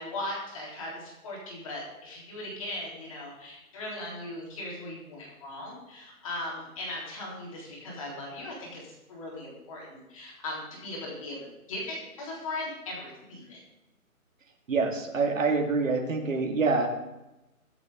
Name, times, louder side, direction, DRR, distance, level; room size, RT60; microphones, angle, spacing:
voice 1, 0.0-13.6, left 1 dB, 25° left, -4 dB, 3.6 m, -38 dB
voice 2, 14.7-16.9, right 4 dB, 60° right, 1 dB, 2.4 m, -26 dB
22.0 x 7.9 x 3.9 m, 0.97 s
hypercardioid pair, 170°, 44 cm